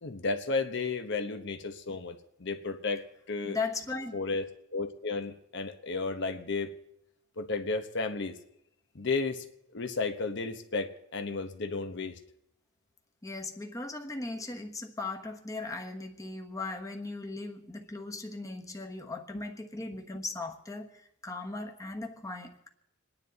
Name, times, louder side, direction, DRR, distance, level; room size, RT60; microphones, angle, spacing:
voice 1, 0.0-3.6 4.1-6.7 7.4-8.3 8.9-9.4 9.7-12.2, left 3 dB, 60° left, 1.0 m, -33 dB
voice 2, 3.4-4.2 13.2-22.7, left 3 dB, 15° left, 1.2 m, -38 dB
27.0 x 10.0 x 4.1 m
head